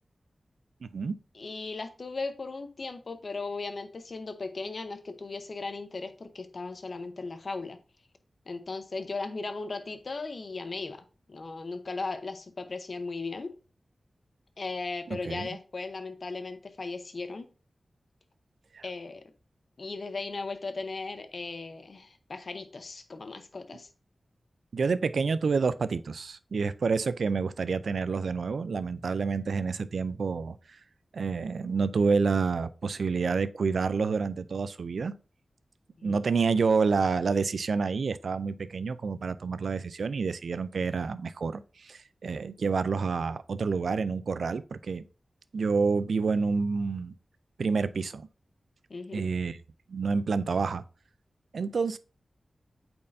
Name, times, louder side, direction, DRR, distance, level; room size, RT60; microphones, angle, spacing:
voice 1, 0.8-1.1 15.1-15.5 18.7-18.8 24.7-30.6 31.1-35.1 36.0-45.0 45.5-47.1 47.6-48.3 49.1-49.6 49.9-50.8 51.5-52.0, right 4 dB, 85° right, 0.3 m, -28 dB
voice 2, 1.3-7.8 8.5-13.5 14.6-17.5 18.8-19.3 19.8-23.9 36.0-36.3 48.9-49.2, left 3 dB, 60° left, 0.8 m, -37 dB
8.5 x 4.4 x 2.6 m
wide cardioid pair, 75°, 0 cm